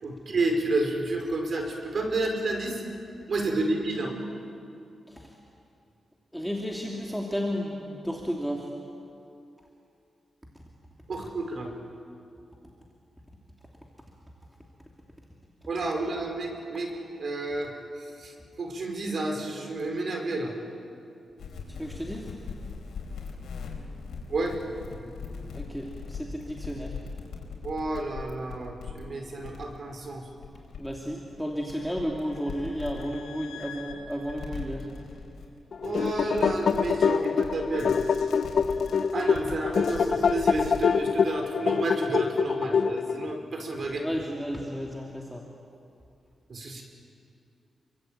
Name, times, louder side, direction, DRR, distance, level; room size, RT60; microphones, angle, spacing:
voice 1, 0.0-2.8 3.3-4.1 11.1-11.7 15.7-16.9 17.2-20.5 24.3-24.5 27.6-30.2 35.8-38.0 39.1-44.0 46.5-46.8, right 2 dB, 55° right, 3 dB, 5.0 m, -30 dB
voice 2, 6.3-8.7 21.8-22.3 25.5-27.0 30.8-34.9 43.8-45.4, equal, ahead, -1 dB, 2.7 m, -33 dB
sound 1, 21.4-40.9, left 5 dB, 90° left, 4.6 m, -41 dB
sound 2, 35.7-43.3, left 6 dB, 65° left, 0.8 m, -25 dB
28.5 x 23.5 x 9.0 m, 2.6 s
wide cardioid pair, 110°, 0 cm